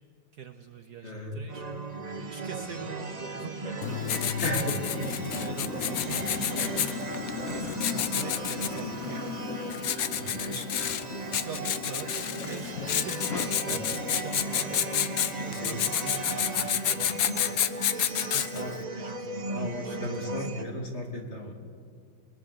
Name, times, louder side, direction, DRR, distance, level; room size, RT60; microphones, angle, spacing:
voice 1, 0.3-1.7 2.1-4.4 4.9-6.9 7.5-9.4 10.1-10.7 11.4-17.6 18.2-20.5, right 6 dB, 60° right, 6 dB, 1.3 m, -43 dB
voice 2, 1.0-1.4 2.7-2.8 4.4-4.8 10.1-10.6 15.4-15.8 18.5-18.7 19.5-21.5, left 1 dB, 30° left, 1 dB, 2.7 m, -35 dB
sound 1, 1.5-20.6, right 2 dB, 35° right, 0.6 m, -36 dB
Writing, 3.8-18.8, left 9 dB, 60° left, 1.0 m, -30 dB
29.0 x 20.5 x 6.7 m, 2.3 s
omnidirectional pair, 2.3 m